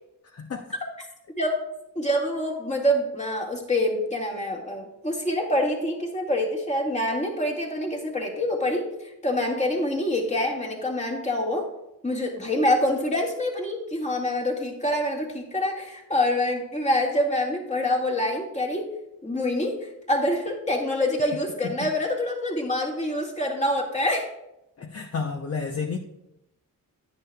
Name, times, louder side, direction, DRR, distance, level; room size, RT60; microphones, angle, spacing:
voice 1, 0.3-0.7 24.8-26.0, left 5 dB, 45° left, 3 dB, 0.8 m, -31 dB
voice 2, 2.0-11.7 12.0-18.9 19.2-24.3, left 1 dB, 20° left, -1 dB, 2.1 m, -26 dB
10.5 x 9.9 x 2.3 m, 0.87 s
wide cardioid pair, 100°, 35 cm